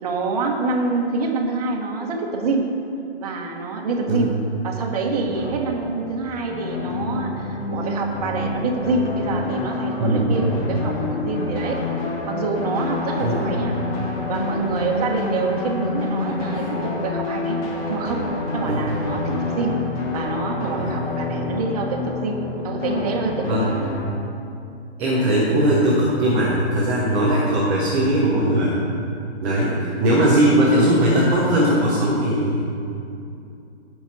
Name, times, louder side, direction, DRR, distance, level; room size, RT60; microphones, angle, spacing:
voice 1, 0.0-2.7 3.2-4.3 4.6-11.8 12.3-13.8 14.3-17.6 17.9-19.8 20.1-23.7 29.7-29.9, right 3 dB, 35° right, 0 dB, 1.3 m, -26 dB
sound 1, 5.2-24.1, left 3 dB, 30° left, 1.6 m, -27 dB
voice 2, 25.0-28.8 29.4-32.7, right 1 dB, 5° right, -8 dB, 0.5 m, -19 dB
16.0 x 6.1 x 4.1 m, 2.5 s
hypercardioid pair, 155°, 33 cm